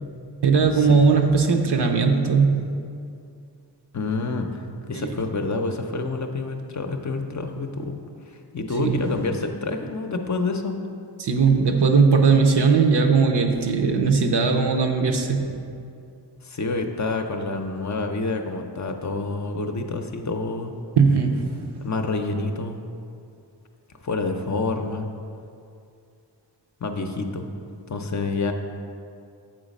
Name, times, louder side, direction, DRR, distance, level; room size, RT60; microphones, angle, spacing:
voice 1, 0.4-2.7 4.9-5.1 8.8-9.0 11.2-15.4 21.0-21.6, right 5 dB, 70° right, 3 dB, 0.7 m, -19 dB
voice 2, 3.9-8.0 8.5-10.7 16.4-20.7 21.8-22.8 24.0-25.1 26.8-27.4 27.9-28.5, left 3 dB, 45° left, 5 dB, 0.5 m, -28 dB
7.6 x 4.0 x 5.2 m, 2.4 s
wide cardioid pair, 85°, 43 cm